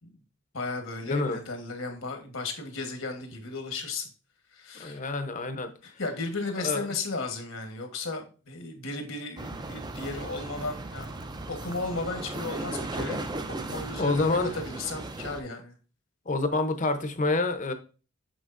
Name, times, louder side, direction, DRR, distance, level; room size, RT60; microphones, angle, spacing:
voice 1, 0.5-4.1 4.5-5.1 5.8-11.2 11.5-13.2 13.6-15.8, left 3 dB, 70° left, 5 dB, 1.3 m, -35 dB
voice 2, 1.1-1.4 4.8-5.7 6.6-6.8 14.0-14.5 16.3-17.7, left 2 dB, 35° left, 9 dB, 0.7 m, -27 dB
sound 1, 9.4-15.4, right 2 dB, 20° right, 0.4 m, -36 dB
6.2 x 6.2 x 2.5 m, 0.36 s
head